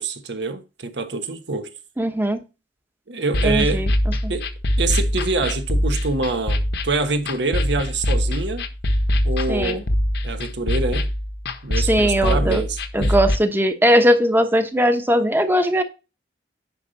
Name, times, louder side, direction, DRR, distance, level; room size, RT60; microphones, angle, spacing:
voice 1, 0.0-1.7 3.1-3.9 4.3-4.5 4.8-8.7 9.2-9.9 10.2-11.1 11.6-13.1, right 3 dB, 70° right, 1.3 m, -25 dB
voice 2, 2.0-2.4 3.4-3.9 4.2-4.3 9.5-9.8 11.7-12.6 12.9-15.8, equal, 10° right, 1.0 m, -19 dB
sound 1, 3.3-13.4, equal, 65° left, 1.0 m, -23 dB
9.9 x 5.6 x 4.1 m
head